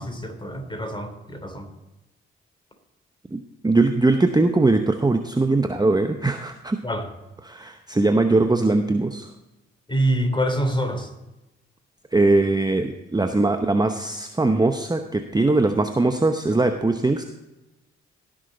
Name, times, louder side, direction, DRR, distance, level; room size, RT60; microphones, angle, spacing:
voice 1, 0.0-1.6 6.8-7.1 9.9-11.1, right 1 dB, 15° left, 4 dB, 3.2 m, -25 dB
voice 2, 3.3-6.8 7.4-9.3 12.1-17.2, right 2 dB, 15° right, 7 dB, 0.8 m, -21 dB
17.0 x 6.3 x 3.9 m, 0.99 s
hypercardioid pair, 40°, 30 cm